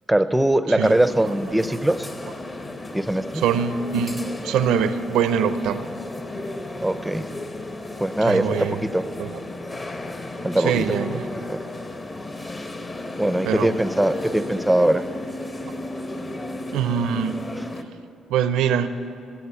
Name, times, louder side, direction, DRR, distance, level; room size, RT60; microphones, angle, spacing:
voice 1, 0.1-2.1 2.9-3.4 6.8-7.3 8.0-9.0 10.4-10.9 11.5-11.6 13.2-15.0 17.6-17.7, right 1 dB, 5° right, 12 dB, 0.5 m, -21 dB
sound 1, 0.8-17.8, left 2 dB, 30° left, 0.9 m, -34 dB
voice 2, 3.4-5.9 8.2-8.8 9.2-9.4 10.6-11.3 13.4-13.7 16.7-17.4 18.3-18.9, right 7 dB, 90° right, 11 dB, 0.5 m, -23 dB
15.5 x 7.2 x 7.1 m, 2.6 s
cardioid pair, 90°, 0 cm